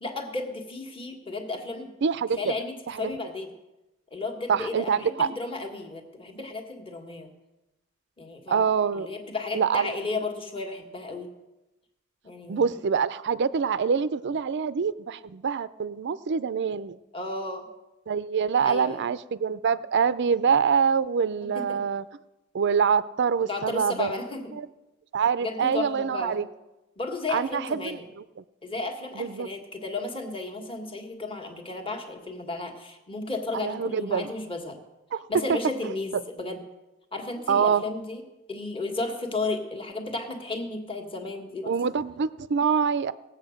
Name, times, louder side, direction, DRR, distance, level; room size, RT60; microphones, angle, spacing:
voice 1, 0.0-1.9 2.3-3.5 4.1-7.3 8.2-11.3 12.2-12.8 17.1-17.7 18.6-19.0 21.4-21.8 23.4-24.5 25.4-26.4 27.0-28.0 28.6-34.8 35.3-36.6 37.1-38.2 38.5-41.8, left 3 dB, 25° left, 4 dB, 1.6 m, -34 dB
voice 2, 2.0-2.4 2.9-3.1 4.5-5.3 8.5-9.1 9.5-9.9 12.5-17.0 18.1-22.0 22.5-24.1 24.5-24.7 25.1-26.4 27.3-28.0 29.2-29.5 33.5-34.3 35.1-35.6 37.5-37.8 41.7-43.1, right 6 dB, 55° right, 16 dB, 0.5 m, -25 dB
18.5 x 8.0 x 6.4 m, 1.0 s
head